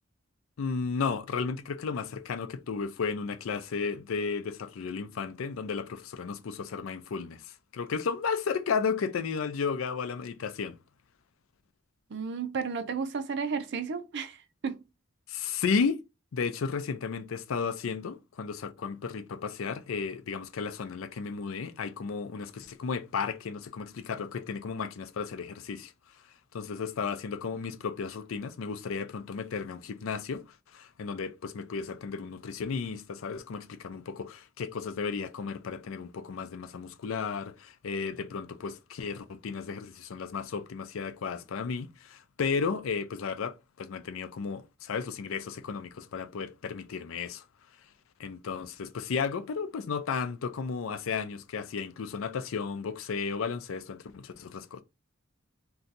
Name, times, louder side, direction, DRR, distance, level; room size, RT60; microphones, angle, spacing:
voice 1, 0.6-10.8 15.3-16.0 16.3-25.9 26.5-47.5 48.2-54.8, left 5 dB, 75° left, 0.4 m, -34 dB
voice 2, 12.1-14.8, right 5 dB, 60° right, 0.5 m, -33 dB
2.6 x 2.3 x 3.9 m
head